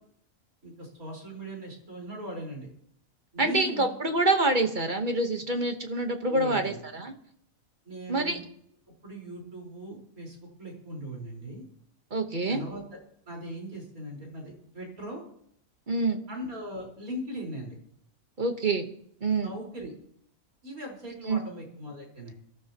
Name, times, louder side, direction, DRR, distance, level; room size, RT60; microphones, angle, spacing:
voice 1, 0.6-2.7 3.3-3.9 6.3-6.8 7.8-8.4 9.0-11.6 12.5-13.0 13.2-15.2 16.3-17.8 19.4-19.9 20.6-22.3, right 1 dB, 90° right, -1 dB, 5.0 m, -39 dB
voice 2, 3.4-7.1 8.1-8.4 12.1-12.7 15.9-16.2 18.4-18.9 19.2-19.5 21.3-21.4, right 2 dB, 35° right, 5 dB, 1.3 m, -26 dB
24.0 x 12.5 x 2.9 m, 0.67 s
omnidirectional pair, 1.5 m